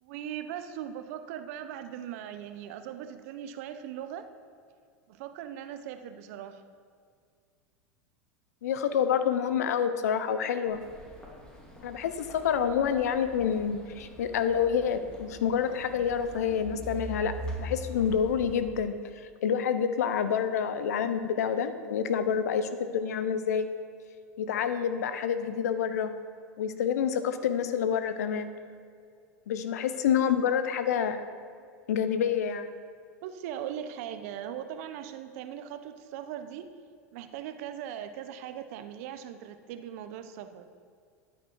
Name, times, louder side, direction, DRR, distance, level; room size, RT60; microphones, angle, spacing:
voice 1, 0.0-4.3 5.1-6.6 31.6-31.7 33.2-36.7 37.1-40.7, right 10 dB, 65° right, 10 dB, 0.9 m, -39 dB
voice 2, 8.6-10.8 11.8-17.3 17.6-18.9 19.4-23.7 24.4-26.1 26.6-28.5 29.5-31.2 31.9-32.7, left 8 dB, 80° left, 10 dB, 0.9 m, -28 dB
sound 1, 10.7-18.6, right 1 dB, 10° left, 2.9 m, -43 dB
13.0 x 9.0 x 4.7 m, 2.2 s
hypercardioid pair, 95°, 9 cm